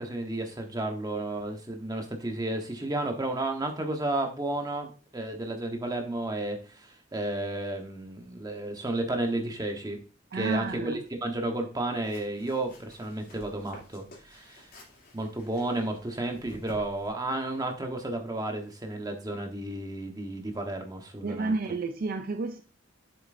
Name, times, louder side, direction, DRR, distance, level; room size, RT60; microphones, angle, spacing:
voice 1, 0.0-10.0 10.3-14.7 15.1-21.5, right 2 dB, 20° right, 1.1 m, -32 dB
voice 2, 10.3-11.0 21.2-22.6, right 3 dB, 50° right, 0.4 m, -30 dB
sound 1, 12.0-17.1, left 1 dB, 50° left, 2.7 m, -52 dB
7.5 x 6.9 x 2.6 m
head